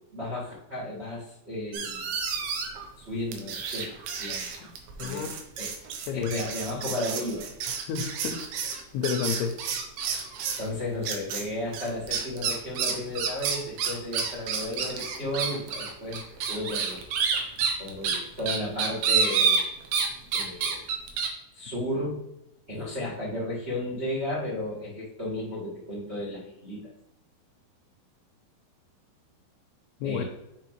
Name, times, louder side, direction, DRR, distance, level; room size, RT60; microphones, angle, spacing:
voice 1, 0.1-2.0 3.0-4.4 5.0-5.7 6.1-7.4 10.6-17.0 17.8-19.6 20.3-20.8 21.5-22.2 22.7-26.8 30.0-30.2, left 1 dB, 50° right, -7 dB, 0.7 m, -34 dB
sound 1, 1.7-2.9 3.3-10.7 11.0-11.4 11.7-20.1 20.3-21.3, right 6 dB, 80° right, 2.8 m, -29 dB
voice 2, 5.0-5.3 6.1-6.3 7.9-8.4 8.9-9.6 30.0-30.2, left 7 dB, 90° left, 2 dB, 2.6 m, -30 dB
7.9 x 4.8 x 3.1 m, 0.86 s
omnidirectional pair, 4.5 m